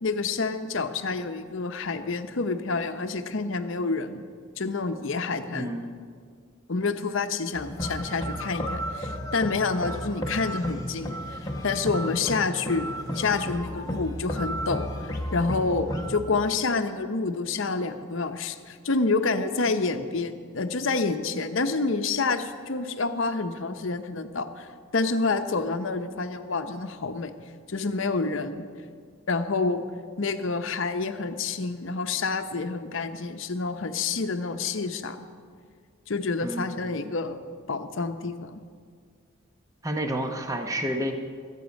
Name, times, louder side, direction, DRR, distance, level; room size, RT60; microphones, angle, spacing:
voice 1, 0.0-4.2 4.6-5.7 6.7-11.2 11.6-12.9 13.1-27.3 27.7-28.7 29.3-29.8 30.2-35.3 36.1-37.4 37.7-38.5, left 4 dB, 60° left, 8 dB, 0.8 m, -28 dB
voice 2, 5.5-5.9 36.4-36.8 39.8-41.1, equal, 15° right, 4 dB, 0.8 m, -29 dB
sound 1, 7.5-16.2, equal, 15° left, 1.1 m, -33 dB
sound 2, 10.9-17.0, equal, 60° right, 4.6 m, -53 dB
20.5 x 8.5 x 5.2 m, 2.1 s
head